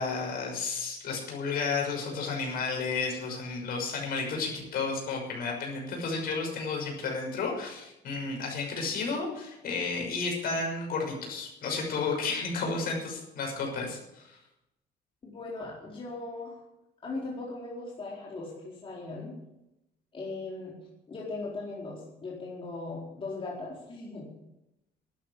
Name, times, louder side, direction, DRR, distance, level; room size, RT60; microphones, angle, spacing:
voice 1, 0.0-14.4, left 4 dB, 60° left, 0 dB, 6.3 m, -32 dB
voice 2, 15.2-16.6 17.0-19.4 20.1-20.7 21.1-24.3, left 3 dB, 30° left, -5 dB, 4.3 m, -38 dB
12.5 x 9.5 x 8.4 m, 0.90 s
cardioid pair, 110°, 17 cm